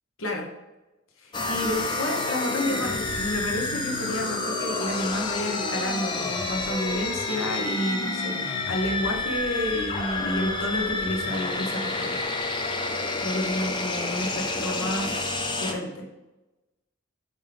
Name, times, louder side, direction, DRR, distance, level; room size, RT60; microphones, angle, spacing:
voice 1, 1.2-12.2 13.2-15.3 15.6-16.0, left 1 dB, 80° left, 1 dB, 1.2 m, -30 dB
sound 1, 1.3-15.7, left 2 dB, 25° left, 0.6 m, -29 dB
5.4 x 5.3 x 3.5 m, 1.0 s
head